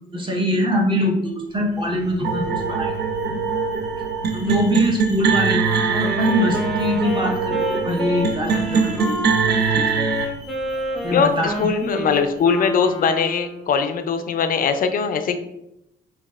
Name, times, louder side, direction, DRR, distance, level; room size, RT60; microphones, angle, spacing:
voice 1, 0.1-2.9 3.2-3.4 4.3-9.2 9.7-10.1 11.0-11.7, equal, 25° right, 0 dB, 0.9 m, -23 dB
Alarm, 1.3-13.3, left 1 dB, 85° right, 1.1 m, -44 dB
sound 1, 2.2-10.3, right 5 dB, 55° right, 0.5 m, -22 dB
Wind instrument woodwind instrument, 5.5-13.8, left 1 dB, ahead, 0.9 m, -29 dB
voice 2, 11.1-15.4, left 6 dB, 45° left, 8 dB, 0.5 m, -21 dB
5.1 x 2.4 x 2.4 m, 0.83 s
cardioid pair, 90°, 20 cm